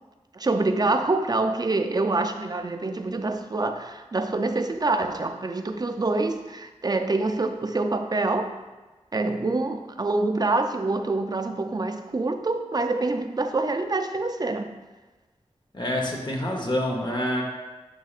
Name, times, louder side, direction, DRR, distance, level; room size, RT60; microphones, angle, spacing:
voice 1, 0.3-8.5 9.1-14.8, right 2 dB, 35° right, 7 dB, 0.4 m, -26 dB
voice 2, 15.7-17.4, left 1 dB, 40° left, 0 dB, 1.0 m, -27 dB
6.3 x 6.3 x 2.4 m, 1.2 s
wide cardioid pair, 75°, 12 cm